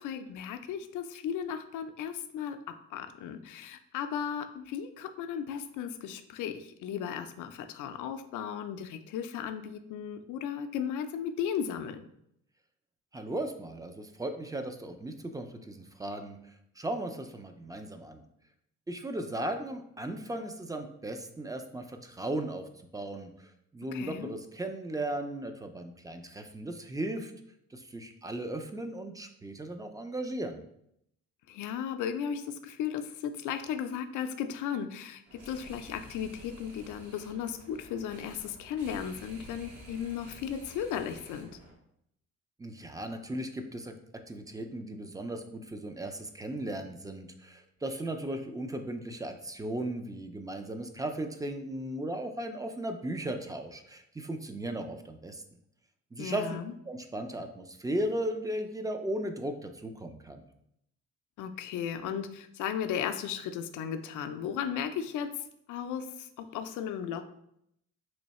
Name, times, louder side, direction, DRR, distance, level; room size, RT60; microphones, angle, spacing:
voice 1, 0.0-12.0 23.9-24.3 31.5-41.5 56.2-56.7 61.4-65.3 65.7-67.3, left 8 dB, 80° left, 8 dB, 0.5 m, -35 dB
voice 2, 13.1-16.4 16.8-18.2 18.9-22.6 22.9-27.3 27.7-30.6 42.6-43.9 44.3-55.4 56.1-56.6 56.9-60.4, right 1 dB, 10° right, 6 dB, 0.4 m, -36 dB
sound 1, 35.3-41.7, right 2 dB, 60° right, 1.1 m, -51 dB
3.1 x 2.7 x 4.1 m, 0.75 s
cardioid pair, 90°, 30 cm